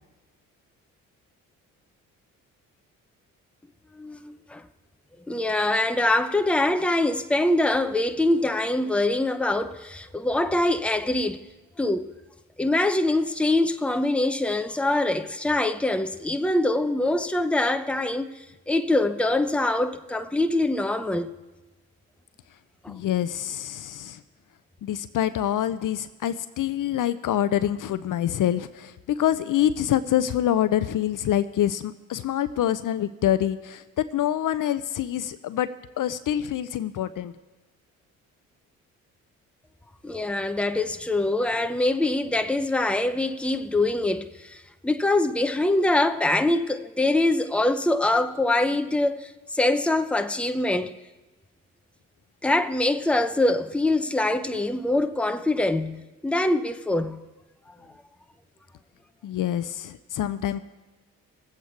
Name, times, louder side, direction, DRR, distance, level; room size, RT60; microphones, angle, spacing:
voice 1, 3.9-4.6 5.3-11.5 11.8-12.1 12.6-18.4 18.7-21.3 22.8-23.0 40.0-51.0 52.4-57.3 57.8-57.9, left 2 dB, 5° left, 0.8 m, -24 dB
voice 2, 22.9-24.2 24.8-35.7 36.0-37.3 59.2-60.6, left 11 dB, 50° left, 0.7 m, -26 dB
20.0 x 8.2 x 4.6 m
hypercardioid pair, 45°, 40 cm